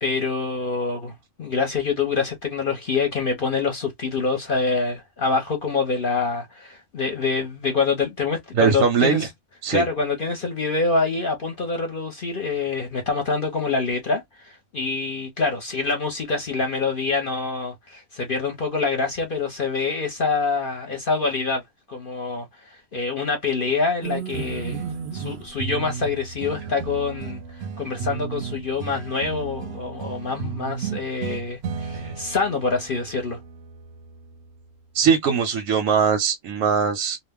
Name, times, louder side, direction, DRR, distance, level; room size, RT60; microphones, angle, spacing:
voice 1, 0.0-9.3 9.7-21.6 21.9-24.8 25.1-33.4, left 4 dB, 50° left, 0.7 m, -26 dB
voice 2, 8.5-9.3 9.6-9.8 31.9-32.2 34.9-37.2, right 6 dB, 90° right, 1.0 m, -21 dB
sound 1, 24.0-34.6, right 6 dB, 65° right, 0.7 m, -34 dB
2.3 x 2.1 x 3.3 m
omnidirectional pair, 1.4 m